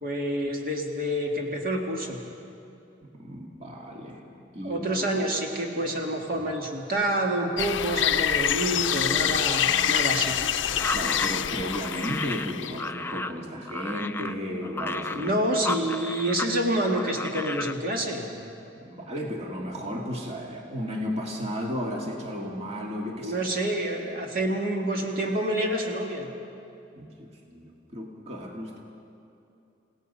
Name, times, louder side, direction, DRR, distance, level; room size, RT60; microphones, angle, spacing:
voice 1, 0.0-2.2 4.6-10.4 15.1-18.3 23.2-26.3, right 1 dB, 50° right, 0 dB, 2.1 m, -28 dB
voice 2, 3.0-4.2 4.5-4.8 10.9-15.3 18.8-23.5 27.0-28.8, equal, 35° right, -1 dB, 2.1 m, -34 dB
sound 1, 7.6-12.9, left 9 dB, 80° left, 0.6 m, -26 dB
sound 2, 10.7-16.5 16.8-17.8, left 3 dB, 10° left, 0.5 m, -34 dB
29.5 x 17.5 x 5.5 m, 2.7 s
head